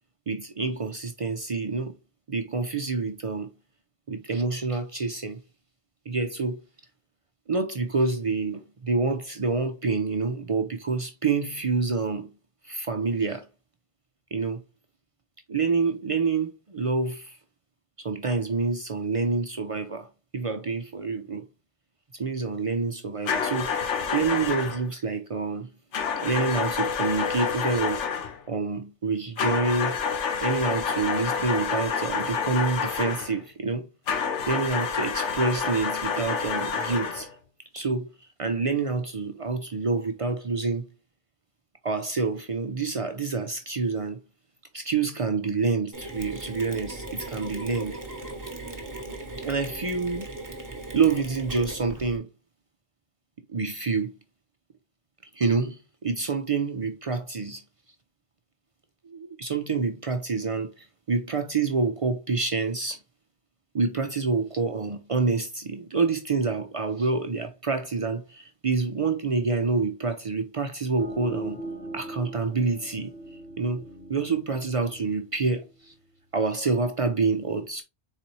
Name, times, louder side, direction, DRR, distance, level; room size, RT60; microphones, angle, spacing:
voice 1, 0.3-1.9 2.3-3.5 4.1-5.4 6.1-6.6 7.5-12.3 12.6-13.5 14.3-14.6 15.5-17.4 18.0-20.1 20.3-21.4 22.1-23.7 24.1-25.7 26.2-28.0 28.5-30.1 30.4-33.9 34.5-37.3 37.7-38.1 38.4-40.9 41.8-44.2 44.7-48.0 49.4-50.3 50.9-52.3 53.5-54.1 55.3-57.6 59.0-63.0 63.7-71.6 71.9-73.1 73.6-73.8 74.1-75.9 76.3-77.8, right 4 dB, 50° right, 0.4 m, -27 dB
sound 1, 23.3-24.8 25.9-28.4 29.4-33.3 34.1-37.3, left 6 dB, 90° left, 1.2 m, -28 dB
Mechanisms, 45.9-52.2, right 2 dB, 20° right, 0.8 m, -38 dB
sound 2, 71.0-76.4, right 1 dB, 65° left, 1.8 m, -40 dB
4.1 x 4.0 x 3.0 m
omnidirectional pair, 1.2 m